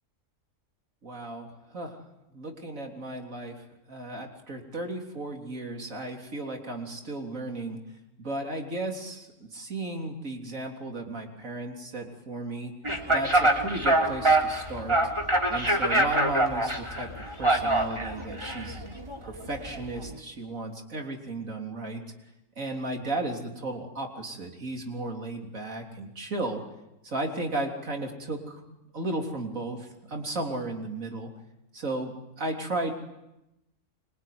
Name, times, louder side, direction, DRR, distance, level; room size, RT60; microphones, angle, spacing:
voice 1, 1.0-2.0 2.3-7.8 8.2-12.7 13.1-15.0 15.5-17.1 17.4-22.0 22.6-26.6 27.0-28.6 28.9-31.3 31.7-32.9, right 2 dB, 80° right, 2 dB, 4.0 m, -34 dB
sound 1, 12.8-20.2, right 1 dB, 20° right, 3.6 m, -25 dB
25.5 x 24.5 x 9.6 m, 0.93 s
omnidirectional pair, 1.4 m